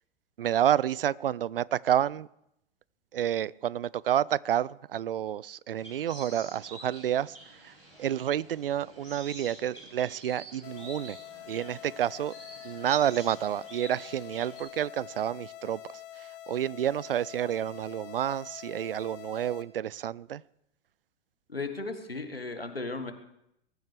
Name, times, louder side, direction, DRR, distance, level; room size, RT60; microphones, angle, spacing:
voice 1, 0.4-2.3 3.1-7.4 7.6-7.7 8.0-11.2 11.5-12.3 12.6-20.4, right 10 dB, 70° right, 0.4 m, -29 dB
sound 1, 5.8-14.6, right 1 dB, 90° right, 5.6 m, -48 dB
sound 2, 10.6-19.6, left 13 dB, 35° left, 1.1 m, -46 dB
voice 2, 21.5-23.1, left 3 dB, 85° left, 1.6 m, -35 dB
22.5 x 14.0 x 3.3 m
figure-of-eight pair, 95°, 29 cm